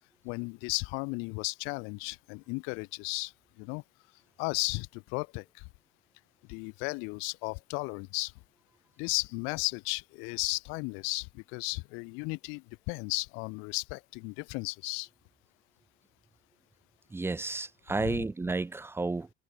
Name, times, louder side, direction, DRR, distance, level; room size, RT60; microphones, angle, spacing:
voice 1, 0.2-3.3 3.6-3.8 4.4-5.6 6.5-8.3 9.0-15.1 18.0-18.2, left 31 dB, 85° left, 1.8 m, -35 dB
voice 2, 17.1-19.3, right 3 dB, 10° right, 1.0 m, -32 dB
cardioid pair, 140°, 20 cm